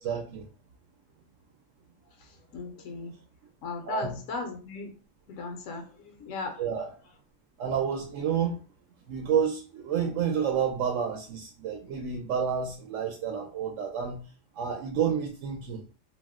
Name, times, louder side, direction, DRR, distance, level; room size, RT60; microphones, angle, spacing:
voice 1, 0.0-0.4 3.9-4.2 6.6-6.9 7.6-8.6 9.1-14.2 14.6-15.8, right 7 dB, 75° right, 0.9 m, -29 dB
voice 2, 2.2-3.1 3.6-4.9 5.3-6.6, left 4 dB, 80° left, 1.0 m, -37 dB
2.7 x 2.0 x 3.5 m
omnidirectional pair, 1.4 m